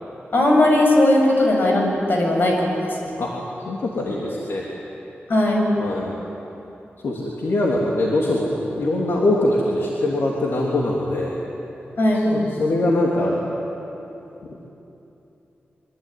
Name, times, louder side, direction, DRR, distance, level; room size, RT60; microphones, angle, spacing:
voice 1, 0.3-3.0 5.3-5.7 12.0-12.3, left 1 dB, 55° left, 0 dB, 7.2 m, -18 dB
voice 2, 3.6-4.6 5.8-6.1 7.0-11.3 12.2-13.5 14.5-14.7, left 1 dB, 75° left, -3 dB, 3.3 m, -22 dB
26.0 x 24.0 x 9.5 m, 3.0 s
wide cardioid pair, 150°, 4 cm